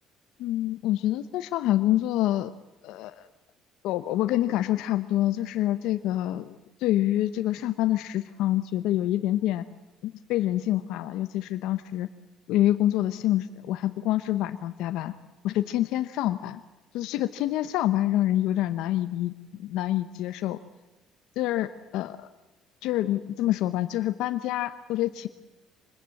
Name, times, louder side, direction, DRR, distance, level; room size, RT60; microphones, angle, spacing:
voice 1, 0.4-2.5 2.8-3.3 3.8-9.6 10.0-12.1 12.5-15.1 15.4-16.6 16.9-20.6 21.4-21.7 21.9-22.2 22.8-25.3, left 14 dB, 80° left, 9 dB, 0.9 m, -26 dB
25.5 x 20.5 x 7.7 m, 1.0 s
supercardioid pair, 80°, 0 cm